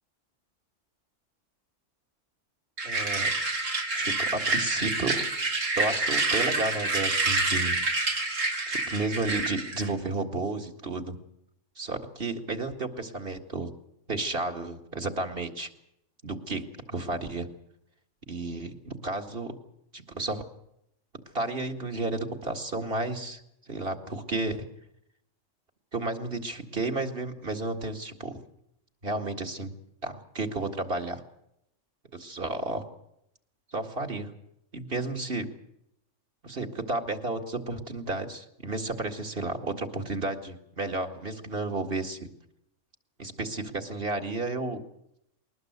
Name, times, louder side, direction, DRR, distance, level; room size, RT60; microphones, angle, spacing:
voice 1, 2.8-3.3 4.0-5.3 5.8-7.8 8.7-11.2 11.8-13.7 14.1-15.7 16.2-17.5 18.3-19.5 19.9-20.5 21.3-23.4 23.7-24.7 25.9-28.4 29.0-29.7 30.0-31.2 32.1-32.8 33.7-34.3 34.7-35.5 36.4-42.3 43.2-44.8, right 2 dB, 50° right, 4 dB, 2.3 m, -32 dB
sound 1, 2.8-9.9, right 2 dB, 80° right, 3.0 m, -28 dB
21.0 x 20.0 x 8.1 m, 0.78 s
omnidirectional pair, 1.3 m